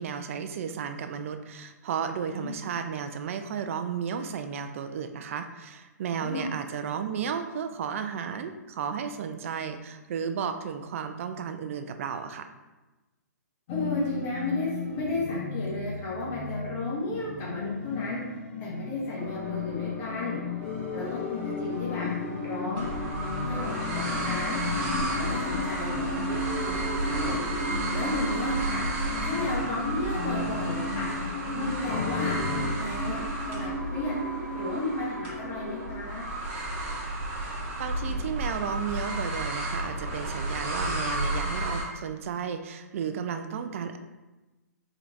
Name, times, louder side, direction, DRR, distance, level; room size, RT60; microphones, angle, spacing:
voice 1, 0.0-12.5 37.8-44.0, right 7 dB, 50° right, 8 dB, 0.4 m, -33 dB
voice 2, 2.3-2.6 6.1-6.5 13.7-18.2 18.6-20.4 20.9-22.1 22.4-22.9 23.5-24.6 25.2-27.4 27.9-28.8 29.2-31.1 31.5-32.4 32.8-33.2 33.5-34.2 34.5-36.3, left 2 dB, 25° left, -5 dB, 1.4 m, -33 dB
sound 1, 13.7-32.7, left 6 dB, 45° left, 0.5 m, -35 dB
sound 2, 19.2-36.0, right 2 dB, 5° left, 1.3 m, -37 dB
sound 3, 22.7-41.8, right 1 dB, 30° right, 1.0 m, -32 dB
4.4 x 3.9 x 2.5 m, 1.1 s
hypercardioid pair, 145°, 9 cm